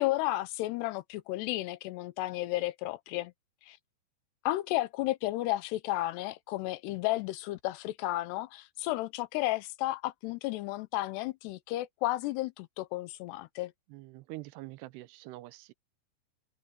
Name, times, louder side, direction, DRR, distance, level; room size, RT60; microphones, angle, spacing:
voice 1, 0.0-3.3 3.7-3.8 4.5-13.7, left 17 dB, 85° left, 2.9 m, -33 dB
voice 2, 13.9-15.7, right 19 dB, 80° right, 2.7 m, -45 dB
omnidirectional pair, 4.8 m